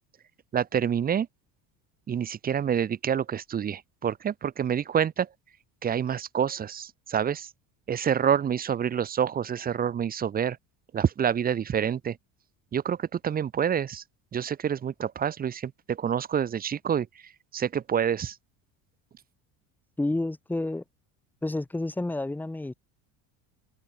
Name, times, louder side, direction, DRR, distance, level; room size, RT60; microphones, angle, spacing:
voice 1, 0.5-1.3 2.1-5.3 5.8-7.5 7.9-10.6 10.9-12.2 12.7-14.0 14.3-17.1 17.5-18.4, right 8 dB, 25° right, 0.7 m, -27 dB
voice 2, 20.0-20.8 21.4-22.7, left 2 dB, 5° left, 1.0 m, -29 dB
cardioid pair, 140°, 37 cm